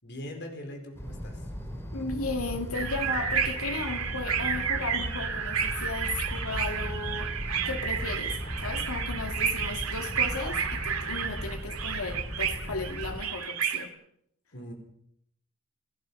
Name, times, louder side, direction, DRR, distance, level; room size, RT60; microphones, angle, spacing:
voice 1, 0.0-1.5 14.5-14.7, equal, 55° left, 4.6 m, -41 dB
sound 1, 0.9-13.2, equal, 10° left, 3.6 m, -37 dB
voice 2, 1.9-13.9, left 3 dB, 85° left, 2.5 m, -35 dB
sound 2, 2.7-13.8, right 7 dB, 85° right, 2.5 m, -31 dB
29.0 x 16.5 x 5.6 m
head